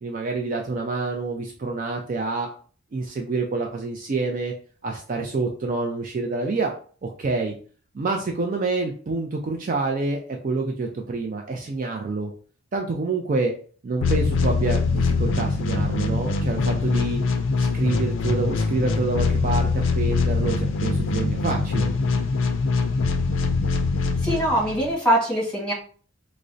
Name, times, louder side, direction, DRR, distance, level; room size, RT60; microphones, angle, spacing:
voice 1, 0.0-2.5 2.9-4.5 4.8-6.7 7.0-7.6 7.9-12.3 12.7-13.5 13.8-17.2 17.6-21.9, right 3 dB, 40° right, 2 dB, 0.3 m, -27 dB
sound 1, 14.0-24.9, left 4 dB, 65° left, 0.4 m, -23 dB
voice 2, 24.2-25.7, equal, 5° left, -5 dB, 1.3 m, -22 dB
4.7 x 2.0 x 2.6 m, 0.43 s
head